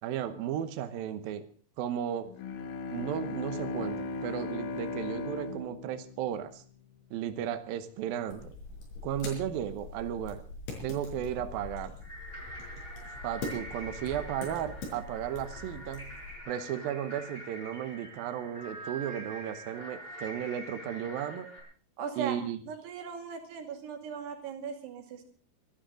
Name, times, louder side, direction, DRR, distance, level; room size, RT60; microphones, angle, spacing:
voice 1, 0.0-1.4 1.8-2.3 2.9-6.6 7.1-8.5 9.0-10.4 10.8-12.0 13.2-16.1 16.5-21.5 22.2-22.6, right 10 dB, 75° right, 9 dB, 2.1 m, -34 dB
Bowed string instrument, 2.3-7.1, left 3 dB, 85° left, 1.6 m, -37 dB
sound 1, 8.3-16.4, left 3 dB, 70° left, 7.2 m, -43 dB
sound 2, 12.0-21.6, right 1 dB, 10° left, 5.7 m, -45 dB
voice 2, 22.0-22.4 22.7-25.3, right 6 dB, 60° right, 4 dB, 4.2 m, -38 dB
24.5 x 13.0 x 3.8 m, 0.42 s
omnidirectional pair, 5.6 m